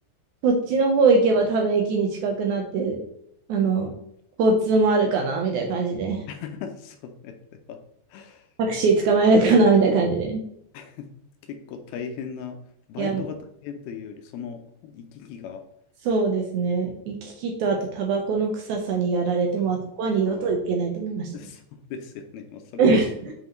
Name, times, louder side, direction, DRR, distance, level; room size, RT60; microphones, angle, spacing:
voice 1, 0.4-3.0 3.5-3.9 4.4-6.2 8.6-10.4 13.0-13.2 16.1-21.3 22.8-23.3, right 3 dB, 80° right, 1 dB, 1.7 m, -22 dB
voice 2, 6.3-7.4 7.7-7.8 8.1-8.5 10.7-11.1 11.4-12.6 12.9-15.6 19.6-19.8 20.3-20.5 21.3-23.0, left 7 dB, 80° left, 5 dB, 2.4 m, -38 dB
7.8 x 5.4 x 3.0 m, 0.74 s
omnidirectional pair, 4.7 m